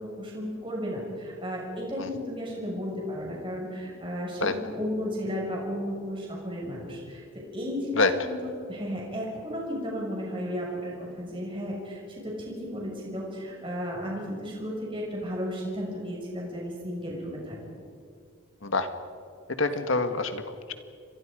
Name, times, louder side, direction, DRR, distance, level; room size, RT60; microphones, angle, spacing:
voice 1, 0.0-17.8, equal, 25° right, -3 dB, 6.1 m, -34 dB
voice 2, 19.5-20.7, left 3 dB, 65° left, 8 dB, 1.7 m, -26 dB
29.5 x 24.5 x 5.2 m, 2.3 s
head